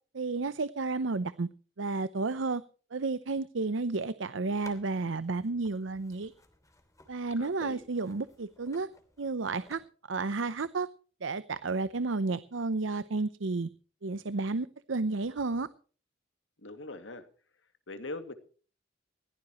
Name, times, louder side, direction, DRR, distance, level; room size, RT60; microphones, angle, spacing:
voice 1, 0.1-1.5 1.8-2.6 2.9-6.3 7.1-8.9 9.2-9.8 10.1-10.9 11.2-13.7 14.0-15.7, right 3 dB, 90° right, 15 dB, 0.7 m, -32 dB
sound 1, 4.4-9.8, left 1 dB, 15° left, 3.0 m, -57 dB
voice 2, 7.4-7.8 16.6-17.2 17.9-18.3, left 2 dB, 80° left, 9 dB, 2.3 m, -41 dB
21.5 x 16.5 x 3.1 m, 0.41 s
head